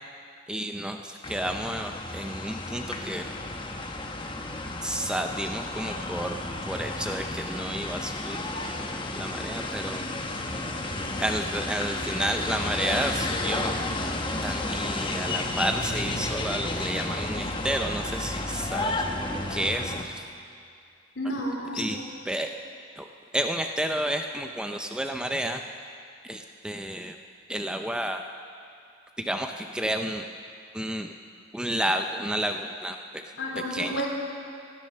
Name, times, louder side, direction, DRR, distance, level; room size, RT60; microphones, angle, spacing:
voice 1, 0.5-3.3 4.8-8.8 9.1-10.0 11.2-13.8 14.4-19.0 19.5-20.2 21.8-22.0 22.3-22.5 23.0-23.1 23.3-25.6 26.2-27.2 27.5-28.2 29.2-30.3 30.7-31.1 31.5-33.2 33.7-34.0, right 1 dB, 5° right, 5 dB, 0.5 m, -31 dB
sound 1, 1.2-20.0, left 2 dB, 25° left, 1.0 m, -32 dB
voice 2, 21.2-22.0 33.4-34.1, equal, 65° left, -2 dB, 3.6 m, -31 dB
17.0 x 12.0 x 6.7 m, 2.3 s
head